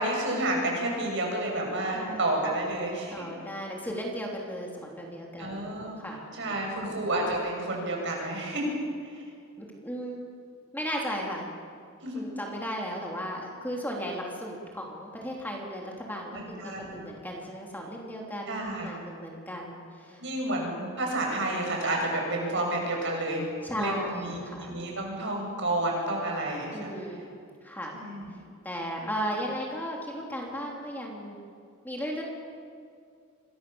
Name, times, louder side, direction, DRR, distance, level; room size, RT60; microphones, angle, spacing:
voice 1, 0.0-3.1 5.4-6.0 6.4-8.7 9.1-9.2 12.0-12.2 16.3-17.0 18.5-19.1 20.2-23.5 23.7-26.9 27.9-28.3, right 1 dB, 60° right, 0 dB, 7.8 m, -30 dB
voice 2, 3.1-5.7 6.0-6.4 6.8-7.0 9.6-10.2 10.7-11.5 12.1-20.2 23.6-24.7 26.7-27.2 27.6-28.0 28.6-31.4 31.8-32.2, equal, 10° left, -1 dB, 3.4 m, -35 dB
27.0 x 24.0 x 7.2 m, 2.3 s
head